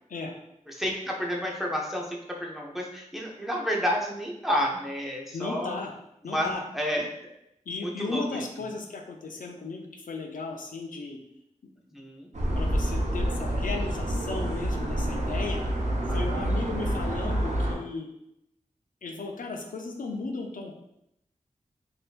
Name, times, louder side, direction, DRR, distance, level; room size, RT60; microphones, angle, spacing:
voice 1, 0.7-5.8 6.2-7.1 7.8-8.4 11.9-12.3 16.1-16.6, equal, ahead, -2 dB, 0.7 m, -30 dB
voice 2, 5.3-5.9 6.2-6.6 7.7-11.2 12.5-15.6 16.1-18.1 19.0-20.7, left 3 dB, 85° left, 3 dB, 0.5 m, -35 dB
sound 1, 12.3-17.7, right 1 dB, 60° right, 0.7 m, -28 dB
3.5 x 2.7 x 2.4 m, 0.81 s
cardioid pair, 45°, 14 cm